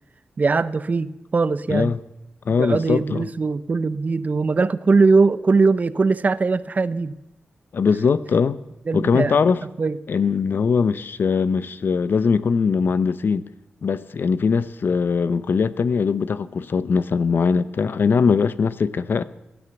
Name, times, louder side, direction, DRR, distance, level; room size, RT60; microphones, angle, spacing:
voice 1, 0.4-1.9 2.5-7.2 8.9-9.4 9.8-10.0, right 4 dB, 45° right, 0.7 m, -20 dB
voice 2, 2.5-3.3 7.7-8.6 8.9-9.6 10.1-13.4 13.8-19.2, left 5 dB, 65° left, 0.7 m, -21 dB
16.5 x 11.5 x 7.1 m
cardioid pair, 65°, 4 cm